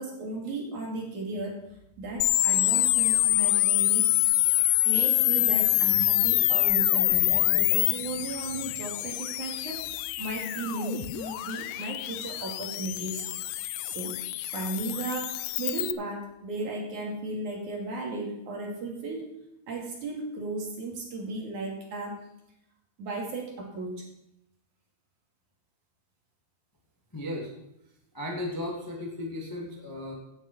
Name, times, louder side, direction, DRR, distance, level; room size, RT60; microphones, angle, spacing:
voice 1, 0.0-1.6 2.0-4.1 4.8-9.8 10.2-13.3 13.9-14.2 14.5-19.3 19.7-22.2 23.0-24.1, right 2 dB, 50° right, 0 dB, 3.6 m, -35 dB
sound 1, 2.2-15.9, left 17 dB, 85° left, 2.6 m, -26 dB
voice 2, 27.1-27.5 28.1-30.1, left 1 dB, 10° left, -1 dB, 0.9 m, -35 dB
17.0 x 9.5 x 4.4 m, 0.83 s
omnidirectional pair, 4.8 m